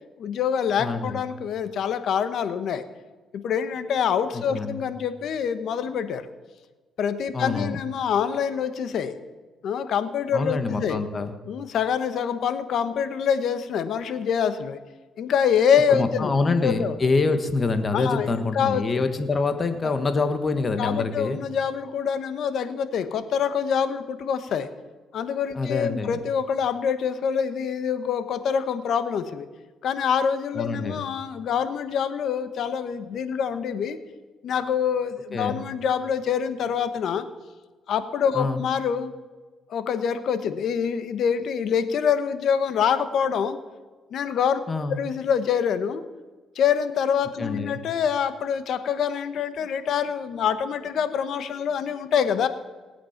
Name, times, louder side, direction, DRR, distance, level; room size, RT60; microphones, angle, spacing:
voice 1, 0.2-2.8 3.3-6.3 7.0-9.1 9.6-11.0 11.5-14.8 15.2-16.9 17.9-19.0 19.8-19.9 20.8-24.7 25.1-29.5 29.8-34.0 34.4-37.2 37.9-39.1 39.7-43.6 44.1-44.6 44.9-46.0 46.5-52.5, left 7 dB, 70° left, 11 dB, 1.1 m, -25 dB
voice 2, 0.8-1.3 4.3-4.8 7.3-7.8 10.3-11.4 15.9-21.4 25.5-26.2 30.5-31.1 35.3-35.6 38.3-38.6 44.7-45.0 47.4-47.8, left 3 dB, 35° left, 9 dB, 1.5 m, -26 dB
19.0 x 8.6 x 5.9 m, 1.3 s
cardioid pair, 90°, 0 cm